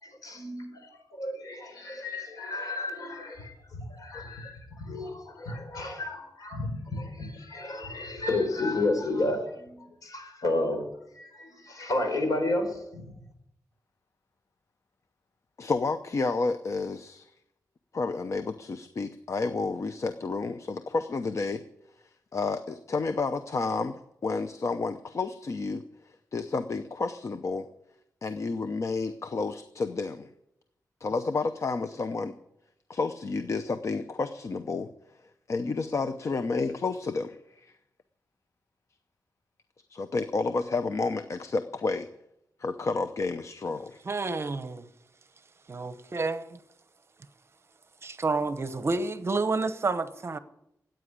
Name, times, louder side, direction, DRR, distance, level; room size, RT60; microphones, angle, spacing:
voice 1, 0.0-10.9 11.1-13.1, left 2 dB, 65° left, 4.4 m, -32 dB
voice 2, 15.6-17.3 17.9-21.6 22.3-25.8 26.3-27.7 28.2-30.3 31.0-32.3 32.9-34.9 35.5-37.7 39.9-42.1 42.6-44.0, left 3 dB, 50° left, 0.7 m, -30 dB
voice 3, 44.0-44.9 45.7-46.6 48.0-50.4, right 3 dB, 40° right, 0.9 m, -29 dB
14.0 x 9.2 x 10.0 m
wide cardioid pair, 150°, 6 cm